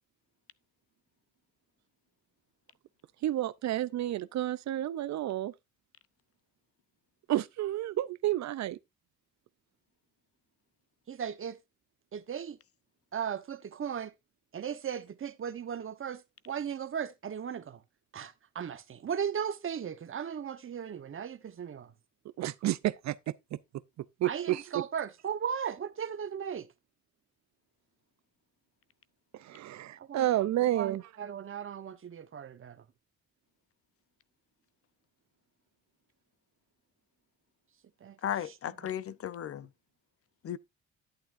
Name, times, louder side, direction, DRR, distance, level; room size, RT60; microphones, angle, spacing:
voice 1, 3.2-5.5 7.3-8.8 22.4-23.2 23.5-23.6 24.2-24.8 29.3-31.0, right 14 dB, 65° right, 0.5 m, -30 dB
voice 2, 11.1-11.6 12.1-12.6 13.1-14.1 14.5-17.8 18.1-21.9 24.2-26.7 30.0-32.8 38.0-38.2 38.8-38.9, right 8 dB, 45° right, 1.0 m, -37 dB
voice 3, 38.2-39.7 40.4-40.6, left 10 dB, 50° left, 0.6 m, -35 dB
11.0 x 8.9 x 2.5 m
cardioid pair, 90°, 30 cm